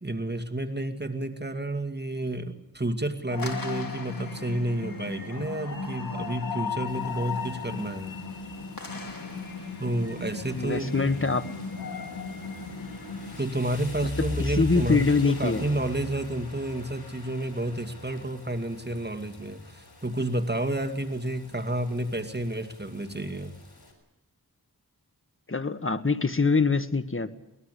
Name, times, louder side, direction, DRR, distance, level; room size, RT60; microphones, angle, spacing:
voice 1, 0.0-8.2 9.8-11.1 13.4-23.5, right 1 dB, 25° right, 5 dB, 2.4 m, -30 dB
sound 1, 3.3-13.4, left 4 dB, 65° left, 3.3 m, -36 dB
Rain, 6.9-23.9, left 2 dB, 85° left, 5.9 m, -42 dB
voice 2, 10.5-11.5 14.4-15.6 25.5-27.3, left 4 dB, 35° left, 11 dB, 1.6 m, -24 dB
23.0 x 20.0 x 8.4 m, 0.87 s
wide cardioid pair, 55°, 37 cm